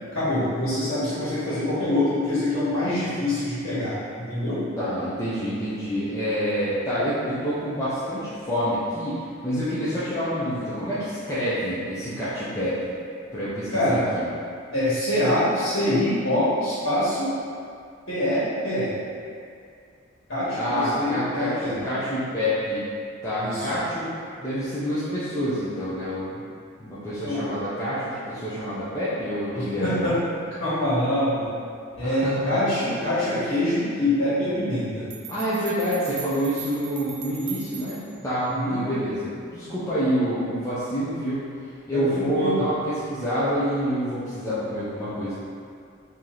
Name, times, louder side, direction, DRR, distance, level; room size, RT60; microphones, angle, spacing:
voice 1, 0.1-4.6 13.7-14.0 14.7-17.3 18.1-19.0 20.3-21.8 23.4-23.7 27.2-27.4 29.5-30.2 30.6-31.5 32.0-35.1 38.5-38.8 41.9-42.6, left 1 dB, 80° left, -12 dB, 1.5 m, -25 dB
voice 2, 4.8-12.9 13.3-14.2 20.5-22.8 23.2-24.1 24.4-26.4 26.8-30.1 32.0-32.6 35.3-38.0 38.2-41.5 41.9-45.3, equal, 15° left, -13 dB, 0.6 m, -27 dB
sound 1, 35.1-38.2, right 10 dB, 85° right, 0.4 m, -39 dB
3.2 x 2.8 x 3.8 m, 2.3 s
head